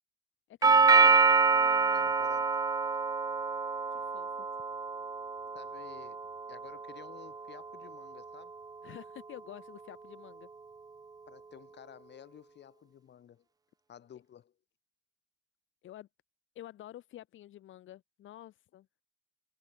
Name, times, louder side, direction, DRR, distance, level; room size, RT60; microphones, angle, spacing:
voice 1, 0.5-1.2 1.5-2.1 3.9-4.5 8.8-10.5 15.8-16.1 16.5-18.9, left 13 dB, 80° left, 3.2 m, -49 dB
Doorbell, 0.6-8.7, right 4 dB, 20° right, 0.5 m, -27 dB
voice 2, 1.9-2.5 5.5-8.5 11.3-13.4 13.9-14.5, left 9 dB, 60° left, 4.2 m, -53 dB
cardioid pair, 90°, 20 cm